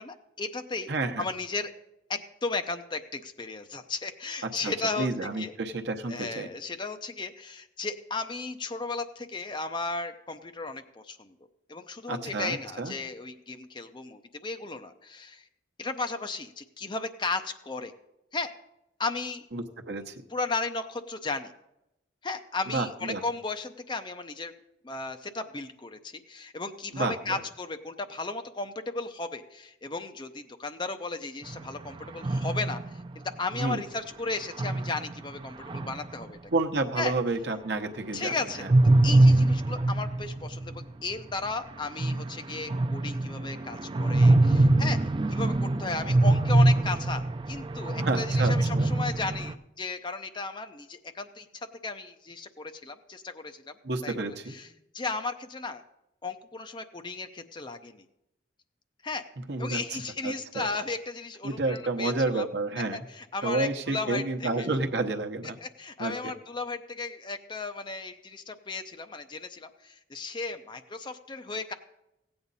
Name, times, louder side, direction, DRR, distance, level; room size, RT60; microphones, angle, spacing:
voice 1, 0.0-0.9 1.2-1.7 2.1-5.1 5.4-5.5 6.1-11.3 11.7-15.5 15.8-17.9 18.3-18.5 19.0-19.5 20.3-21.5 22.2-24.5 24.8-32.9 33.4-36.4 37.0-37.1 38.1-38.7 39.0-45.0 45.3-51.5 51.8-53.8 54.0-54.7 54.9-55.8 56.2-58.0 59.0-59.2 59.6-62.5 62.9-64.7 65.6-71.7, left 3 dB, 25° left, 8 dB, 0.5 m, -35 dB
voice 2, 0.9-1.2 4.4-6.5 12.1-12.9 19.5-20.2 22.7-23.2 26.9-27.4 33.5-33.8 36.5-38.3 38.6-38.7 48.0-48.9 53.8-54.6 59.5-60.7 61.4-63.0 63.4-65.6 66.0-66.1, right 3 dB, 65° right, 5 dB, 0.9 m, -30 dB
sound 1, 31.4-33.3 34.4-36.3 38.5-40.8 41.1-41.2 41.5-41.6 41.8-49.5, right 2 dB, 25° right, 0.3 m, -24 dB
16.0 x 8.7 x 4.1 m, 0.87 s
head